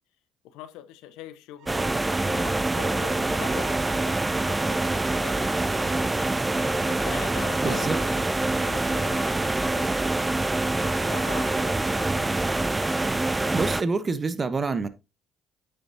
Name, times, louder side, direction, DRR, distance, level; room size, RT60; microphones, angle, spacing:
voice 1, 0.4-1.8 2.3-6.1 6.9-8.3 8.6-10.1 10.4-12.5, left 12 dB, 75° left, 0.9 m, -42 dB
sound 1, 1.6-7.7, right 14 dB, 70° right, 0.9 m, -47 dB
sound 2, 1.7-13.8, right 2 dB, 20° right, 0.5 m, -25 dB
sound 3, 3.1-13.7, left 5 dB, 50° left, 2.2 m, -49 dB
voice 2, 7.6-8.0 13.5-14.9, right 4 dB, 35° right, 1.1 m, -26 dB
8.7 x 7.3 x 2.8 m
hypercardioid pair, 55°, 0 cm